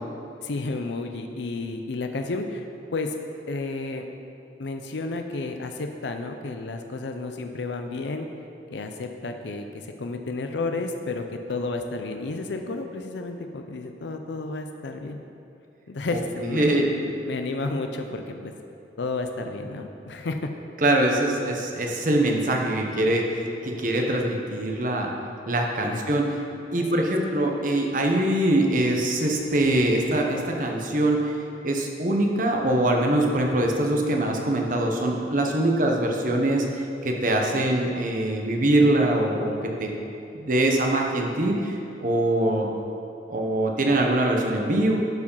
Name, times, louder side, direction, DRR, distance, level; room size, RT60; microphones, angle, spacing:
voice 1, 0.4-2.7 2.9-3.1 3.5-4.0 4.6-8.3 8.7-15.2 15.9-18.5 19.0-20.5 25.8-26.2, left 3 dB, 75° left, 5 dB, 0.5 m, -31 dB
voice 2, 16.5-16.9 20.8-25.1 25.5-26.4 26.7-39.9 40.3-42.7 43.3-45.0, right 1 dB, 45° right, 1 dB, 1.0 m, -23 dB
12.0 x 4.8 x 5.5 m, 2.7 s
head